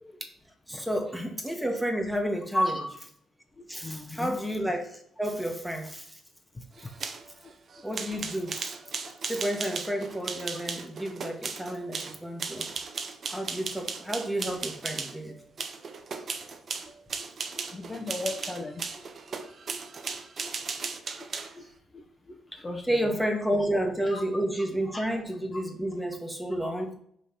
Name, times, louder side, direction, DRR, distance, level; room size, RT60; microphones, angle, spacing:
voice 1, 0.7-2.8 3.7-6.2 7.8-8.7 9.3-12.7 13.3-15.3 22.9-26.9, right 1 dB, ahead, 3 dB, 1.3 m, -31 dB
voice 2, 2.5-2.9 3.8-4.3 17.5-19.0 19.3-19.4 19.7-19.8 20.1-20.5 20.8-20.9 21.5-21.7 21.9-22.0 22.3-23.1 23.6-23.7 24.1-24.2 24.9-25.0 26.6-26.7, left 1 dB, 20° left, 1 dB, 0.8 m, -35 dB
sound 1, 6.8-15.2 15.6-21.6, right 5 dB, 45° right, 0.7 m, -36 dB
5.4 x 3.3 x 5.6 m, 0.65 s
cardioid pair, 90°, 0 cm